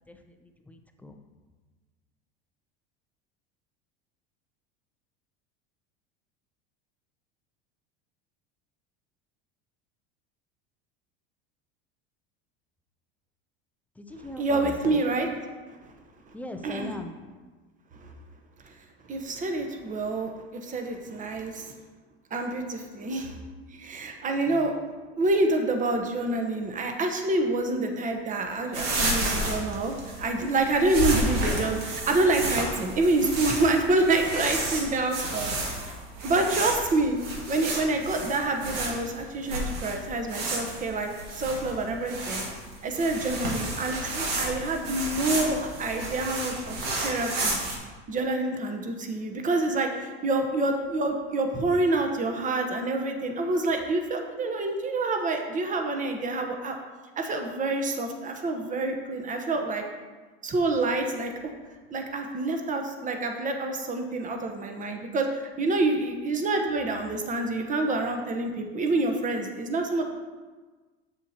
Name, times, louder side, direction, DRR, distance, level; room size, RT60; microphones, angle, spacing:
voice 1, 0.1-1.1 14.0-15.0 16.3-17.2 24.5-24.8, left 1 dB, 5° left, 5 dB, 0.4 m, -40 dB
voice 2, 14.4-15.3 16.6-16.9 18.0-18.1 18.6-18.7 19.1-21.7 22.3-23.4 23.7-24.8 25.2-35.5 36.2-37.2 37.5-42.5 42.8-47.6 48.1-56.8 57.2-59.8 60.4-61.5 61.9-70.0, right 2 dB, 25° right, 4 dB, 0.9 m, -27 dB
sound 1, 28.7-47.8, right 1 dB, 80° right, 1.8 m, -31 dB
7.4 x 7.0 x 2.8 m, 1.3 s
supercardioid pair, 120°, 30 cm